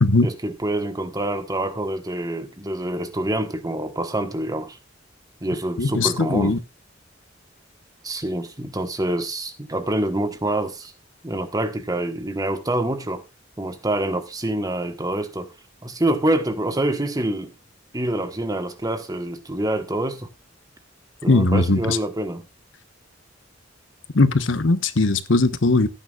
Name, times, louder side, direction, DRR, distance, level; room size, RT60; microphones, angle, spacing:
voice 1, 0.2-4.8 5.4-6.6 8.0-10.9 11.2-13.2 13.6-15.5 15.8-17.5 17.9-20.3 21.2-22.4, right 1 dB, 20° right, 1.2 m, -26 dB
voice 2, 5.8-6.6 21.3-22.0 24.1-25.9, left 2 dB, 75° left, 1.1 m, -19 dB
15.0 x 9.4 x 2.4 m
head